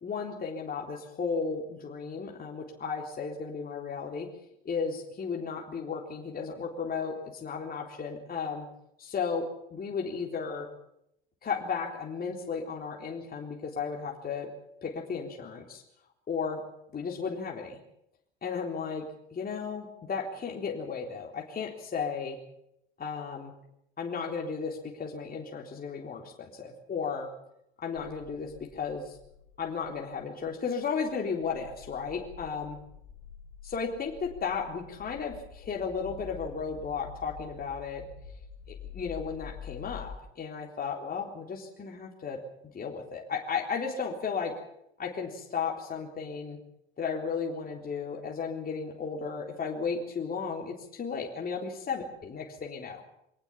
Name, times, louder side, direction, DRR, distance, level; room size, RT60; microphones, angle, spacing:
voice 1, 0.0-4.3 4.7-8.7 9.0-10.7 11.4-14.5 14.8-15.8 16.3-16.6 16.9-17.8 18.4-19.1 19.3-22.4 23.0-23.5 24.0-27.3 27.8-29.2 29.6-32.7 33.7-38.1 38.7-42.4 42.7-44.5 45.0-46.6 47.0-53.0, left 5 dB, 30° left, 0 dB, 3.7 m, -34 dB
sound 1, 27.9-30.5 30.8-30.9 31.1-31.2 31.4-40.2, left 7 dB, 60° left, 3.9 m, -47 dB
24.0 x 18.5 x 7.3 m, 0.77 s
hypercardioid pair, 75°, 31 cm